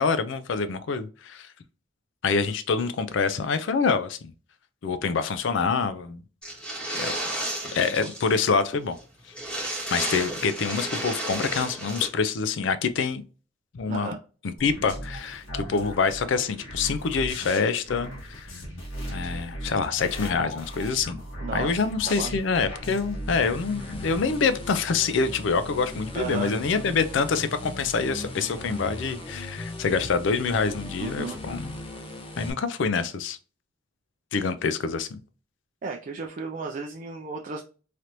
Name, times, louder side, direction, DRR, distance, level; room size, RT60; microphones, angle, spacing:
voice 1, 0.0-1.5 2.2-4.3 4.8-6.2 7.0-7.1 7.7-9.0 9.9-13.2 13.7-14.1 14.4-18.5 19.1-21.2 21.5-31.7 32.4-33.4 34.3-35.2, left 5 dB, 70° left, 0.4 m, -26 dB
sound 1, 6.4-8.3 8.6-8.7 9.0-9.1 9.3-12.1, right 1 dB, 5° left, 1.1 m, -32 dB
sound 2, 14.6-24.2, equal, 90° left, 1.4 m, -37 dB
voice 2, 21.4-22.3 26.1-26.5 31.0-31.4 35.8-37.6, right 4 dB, 45° right, 0.4 m, -34 dB
sound 3, 23.1-32.5, left 1 dB, 25° left, 0.7 m, -38 dB
3.3 x 2.9 x 2.5 m
head